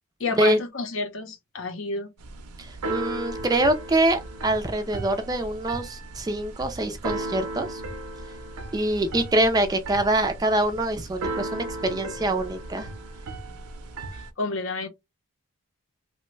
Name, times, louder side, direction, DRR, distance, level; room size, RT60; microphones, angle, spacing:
voice 1, 0.2-2.1 14.1-14.9, left 3 dB, 60° left, 0.7 m, -30 dB
Keyboard (musical), 2.2-14.3, right 2 dB, 90° right, 0.6 m, -36 dB
voice 2, 2.6-7.8 8.7-12.9, right 1 dB, 15° right, 0.3 m, -25 dB
3.0 x 2.2 x 3.1 m
head